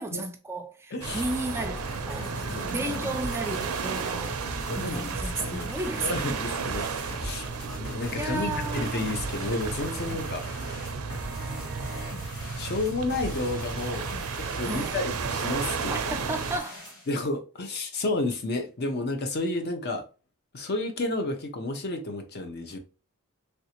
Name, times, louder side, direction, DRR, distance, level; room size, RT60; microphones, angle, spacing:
voice 1, 0.0-2.3 2.7-4.3 4.8-6.3 8.2-9.1 14.6-15.0 15.9-16.8, right 2 dB, 10° right, 0.3 m, -33 dB
voice 2, 0.9-1.2 2.2-2.7 3.4-3.7 4.7-5.7 6.0-6.9 7.1-7.5 7.8-10.5 12.6-14.1 14.4-16.0 17.1-20.0 20.5-22.8, left 2 dB, 50° left, 0.6 m, -31 dB
sound 1, 1.0-16.6, right 5 dB, 80° right, 0.4 m, -33 dB
sound 2, 1.1-17.1, left 1 dB, 90° left, 1.6 m, -40 dB
3.2 x 2.6 x 2.8 m
head